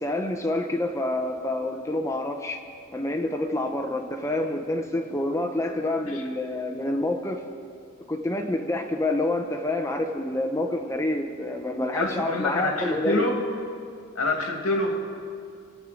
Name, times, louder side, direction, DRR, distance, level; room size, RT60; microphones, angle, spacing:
voice 1, 0.0-2.6 2.9-7.4 8.1-13.2, left 1 dB, 15° left, 5 dB, 0.8 m, -27 dB
voice 2, 11.9-13.4 14.2-15.0, left 2 dB, 90° left, 2 dB, 2.2 m, -26 dB
25.5 x 8.6 x 5.1 m, 2.3 s
head